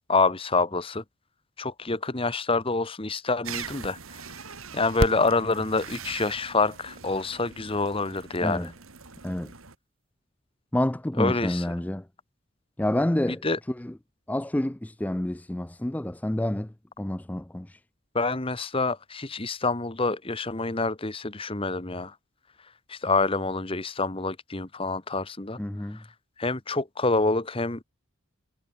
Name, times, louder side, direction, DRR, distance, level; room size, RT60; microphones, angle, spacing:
voice 1, 0.1-1.0 1.6-4.2 4.7-8.7 11.2-11.7 13.3-13.6 18.1-22.1 22.9-25.6 25.9-26.0 26.4-27.8, left 3 dB, 25° left, 1.2 m, -27 dB
sound 1, 3.4-9.8, right 2 dB, 75° right, 2.8 m, -37 dB
voice 2, 10.7-12.0 12.8-13.4 13.8-13.9 14.3-16.7 17.0-17.8 25.6-26.0, left 1 dB, 5° left, 0.4 m, -28 dB
head